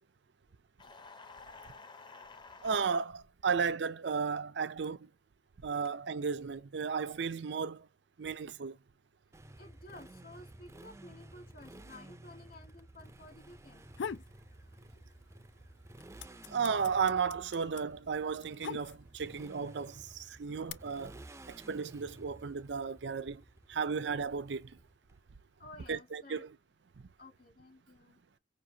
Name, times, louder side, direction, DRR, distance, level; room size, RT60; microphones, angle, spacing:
sound 1, 0.8-3.0, left 4 dB, 25° left, 0.8 m, -51 dB
voice 1, 2.6-5.1 5.6-7.9 8.2-8.8 16.5-21.2 21.5-23.4 23.7-24.7 25.9-26.6 27.0-27.1, right 5 dB, 75° right, 0.5 m, -34 dB
Motorcycle, 9.3-25.1, right 1 dB, 15° right, 0.5 m, -54 dB
voice 2, 9.6-13.9 14.3-14.4 25.6-26.5 27.2-28.2, left 2 dB, 55° left, 1.8 m, -53 dB
sound 2, 13.7-14.3 14.7-15.5 15.7-19.3 20.1-20.7, left 7 dB, 80° left, 0.4 m, -42 dB
6.0 x 2.6 x 2.7 m
head